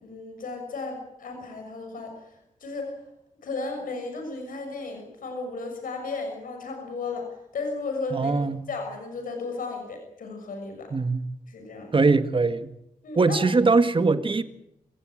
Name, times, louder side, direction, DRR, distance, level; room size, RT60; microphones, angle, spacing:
voice 1, 0.0-2.3 2.6-2.9 3.4-7.3 7.5-8.4 8.7-10.9 11.5-12.0 13.0-13.4, left 3 dB, 90° left, 6.4 m, -34 dB
voice 2, 8.1-8.6 10.9-11.3 11.9-12.7 13.2-14.4, right 3 dB, 40° right, 1.9 m, -21 dB
27.5 x 17.0 x 9.0 m
wide cardioid pair, 90°, 14 cm